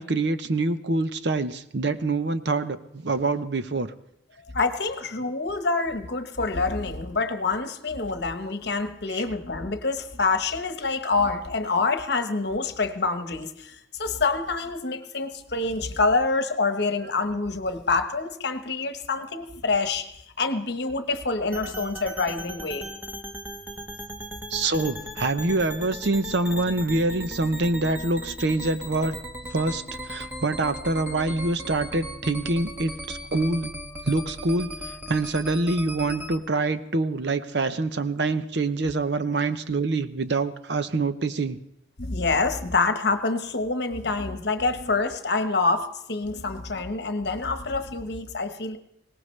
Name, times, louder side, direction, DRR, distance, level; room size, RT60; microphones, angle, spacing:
voice 1, 0.0-3.9 9.1-9.2 24.5-29.2 29.5-33.7 34.0-41.6, right 2 dB, 60° right, 11 dB, 0.7 m, -25 dB
voice 2, 4.5-20.1 20.4-22.9 42.0-48.8, left 3 dB, 55° left, 8 dB, 1.1 m, -26 dB
sound 1, 21.5-36.4, equal, 10° right, 1.1 m, -37 dB
21.0 x 18.0 x 3.3 m, 0.78 s
head